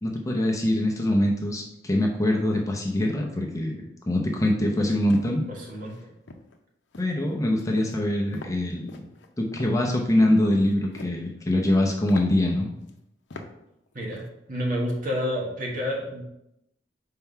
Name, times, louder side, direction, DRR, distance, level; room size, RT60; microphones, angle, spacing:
voice 1, 0.0-5.4 7.0-9.1 9.4-12.7, left 1 dB, 20° left, 0 dB, 0.6 m, -24 dB
sound 1, 4.8-5.3 5.9-6.0 6.3-6.6 6.9-7.2 7.6-7.9 8.3-8.6 8.9-9.7 10.7-11.2 11.6-11.7 12.1-12.3 12.9-13.0 13.3-13.5 13.9-14.2, left 2 dB, 75° left, 0.6 m, -42 dB
voice 2, 5.5-5.9 13.9-16.2, equal, 50° right, -2 dB, 1.5 m, -29 dB
4.5 x 3.8 x 5.5 m, 0.84 s
head